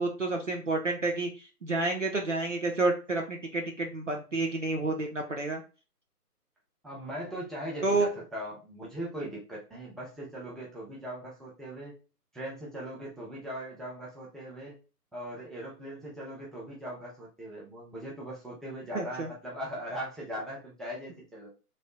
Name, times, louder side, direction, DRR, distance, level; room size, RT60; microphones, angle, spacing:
voice 1, 0.0-5.6 7.8-8.1 18.9-19.3, right 2 dB, 50° right, 1 dB, 0.5 m, -29 dB
voice 2, 6.8-11.9 12.3-14.8 15.1-21.5, equal, ahead, -4 dB, 0.5 m, -40 dB
3.1 x 2.8 x 2.9 m, 0.33 s
figure-of-eight pair, 170°, 47 cm